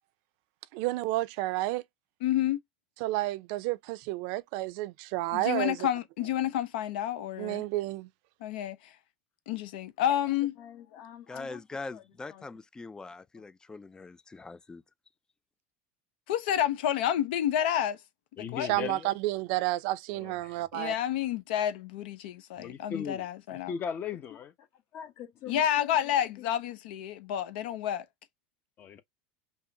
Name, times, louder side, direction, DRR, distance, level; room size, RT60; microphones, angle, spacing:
voice 1, 0.7-1.8 3.0-5.9 7.4-8.1 18.7-20.9, right 17 dB, 70° right, 0.5 m, -31 dB
voice 2, 2.2-2.6 5.3-7.6 8.4-8.8 9.5-10.5 16.3-18.0 18.5-18.7 20.7-23.7 25.5-28.0, left 10 dB, 80° left, 0.7 m, -29 dB
voice 3, 10.6-11.6 11.9-12.5 13.3-13.4 24.7-26.6, left 10 dB, 55° left, 1.3 m, -47 dB
voice 4, 11.3-14.8, left 3 dB, 15° left, 0.3 m, -42 dB
voice 5, 18.4-19.2 20.1-20.6 22.6-23.3 23.5-24.5 28.8-29.0, left 7 dB, 40° left, 0.8 m, -37 dB
5.4 x 2.1 x 2.7 m
supercardioid pair, 100°, 5 cm